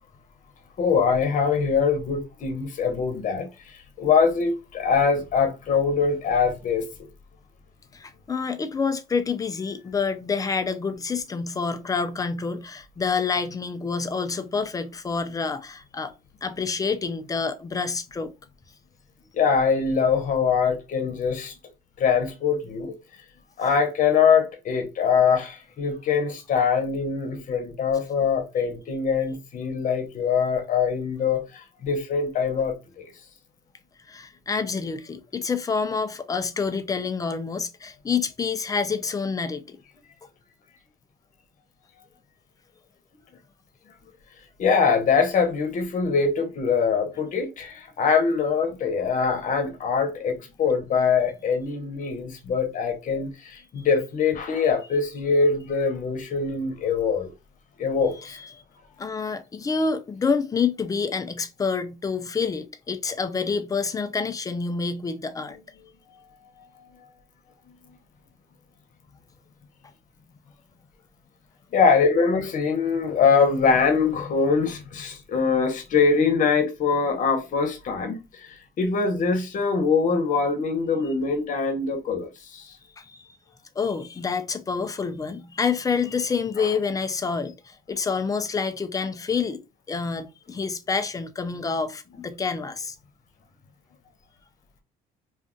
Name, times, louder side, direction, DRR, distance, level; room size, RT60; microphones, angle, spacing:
voice 1, 0.8-6.9 19.3-21.6 22.0-22.9 23.6-33.1 44.6-57.3 57.8-58.4 66.9-67.0 67.7-68.0 71.7-82.7 86.6-86.7, left 5 dB, 50° left, 0.9 m, -23 dB
voice 2, 7.9-16.1 16.4-18.3 34.1-39.8 58.2-58.5 59.0-65.6 83.0-83.4 83.8-89.6 89.9-93.0, left 5 dB, 20° left, 0.5 m, -28 dB
2.6 x 2.4 x 3.6 m
cardioid pair, 110°, 17 cm